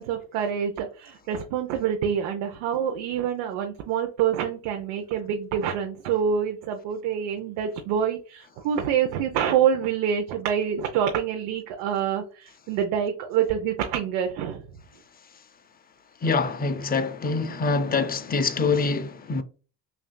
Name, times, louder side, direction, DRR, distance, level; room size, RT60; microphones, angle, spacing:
voice 1, 0.0-14.6, right 8 dB, 75° right, 0.8 m, -26 dB
voice 2, 16.2-19.4, left 4 dB, 20° left, 0.5 m, -25 dB
5.8 x 2.6 x 2.2 m
supercardioid pair, 85°, 48 cm